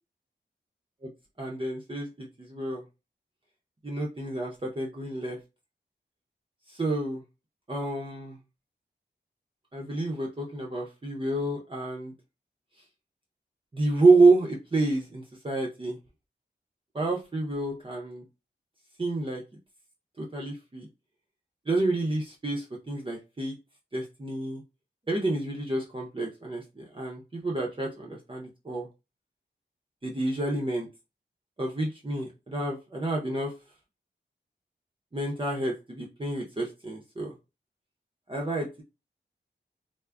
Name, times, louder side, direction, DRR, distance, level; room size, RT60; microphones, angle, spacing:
voice 1, 1.4-2.8 3.8-5.4 6.7-7.2 7.7-8.4 9.7-12.1 13.7-16.0 16.9-18.2 19.0-19.4 20.2-20.9 21.7-23.5 23.9-24.6 25.1-28.9 30.0-30.9 31.6-33.5 35.1-37.3 38.3-38.8, right 2 dB, 25° right, -3 dB, 0.6 m, -28 dB
2.4 x 2.0 x 3.3 m, 0.27 s
wide cardioid pair, 75°, 19 cm